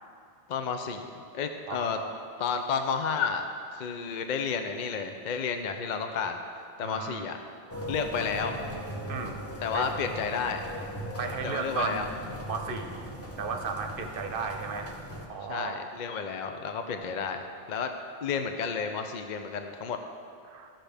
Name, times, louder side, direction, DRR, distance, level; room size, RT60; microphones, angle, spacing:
voice 1, 0.5-1.1 1.3-2.0 2.4-3.5 3.7-6.4 6.8-7.4 7.9-8.6 9.6-10.6 11.4-12.1 15.5-17.4 17.7-17.9 18.2-20.0, left 6 dB, 55° left, 6 dB, 0.6 m, -31 dB
voice 2, 1.7-2.1 6.8-7.3 9.1-9.4 9.7-9.9 11.2-12.1 12.5-13.1 13.4-14.9 15.3-15.8 20.5-20.7, right 4 dB, 60° right, 5 dB, 0.9 m, -34 dB
sound 1, 7.7-15.3, equal, 15° left, 0.8 m, -39 dB
14.0 x 5.8 x 3.4 m, 2.3 s
omnidirectional pair, 1.1 m